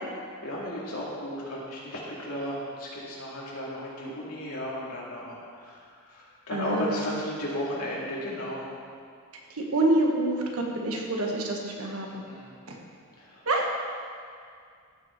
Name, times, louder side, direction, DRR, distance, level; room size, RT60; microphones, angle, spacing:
voice 1, 0.4-8.7 12.2-12.5 13.2-13.4, equal, 85° left, -6 dB, 2.4 m, -34 dB
voice 2, 6.5-7.1 9.7-12.1 12.7-12.8 13.5-13.7, right 1 dB, 80° right, 0 dB, 1.5 m, -26 dB
14.5 x 6.2 x 4.4 m, 2.2 s
head